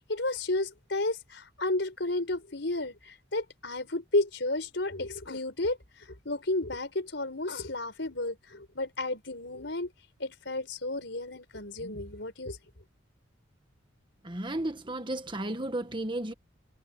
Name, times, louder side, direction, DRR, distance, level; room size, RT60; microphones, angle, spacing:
voice 1, 0.0-9.9 10.2-12.6, left 2 dB, 65° left, 5.6 m, -32 dB
voice 2, 14.2-16.3, right 1 dB, 25° right, 1.5 m, -33 dB
head